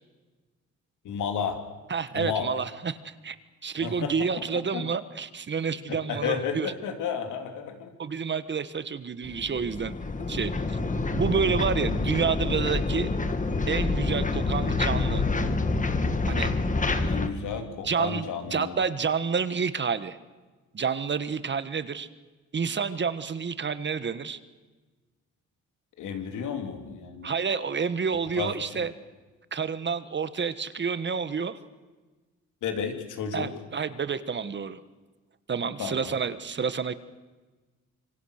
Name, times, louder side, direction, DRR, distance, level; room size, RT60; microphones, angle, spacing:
voice 1, 1.1-1.6 2.1-2.5 3.8-4.1 4.7-4.8 5.9-7.9 17.0-18.8 26.0-27.3 28.4-28.5 32.6-33.5 35.8-36.1, left 7 dB, 80° left, 5 dB, 3.5 m, -32 dB
voice 2, 1.9-3.4 3.6-6.7 8.0-9.9 10.3-10.8 11.1-13.1 13.7-15.2 16.3-16.5 17.8-20.2 20.7-22.1 22.5-24.4 27.2-28.9 29.5-31.6 33.3-34.8 35.5-36.9, right 6 dB, 35° right, 13 dB, 1.4 m, -29 dB
sound 1, 9.2-17.3, left 3 dB, 25° left, 2.2 m, -27 dB
26.5 x 24.0 x 6.6 m, 1.3 s
cardioid pair, 90°, 30 cm